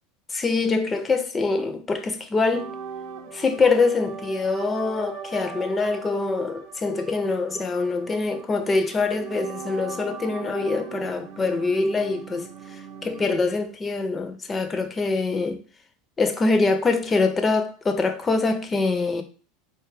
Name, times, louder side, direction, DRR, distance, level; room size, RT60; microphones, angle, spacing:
voice 1, 0.3-2.7 3.3-12.5 13.0-15.6 16.2-19.2, left 3 dB, 20° left, 0.5 m, -24 dB
sound 1, 2.5-13.4, right 6 dB, 55° right, 0.6 m, -39 dB
4.4 x 2.3 x 3.2 m
figure-of-eight pair, 75°, 0 cm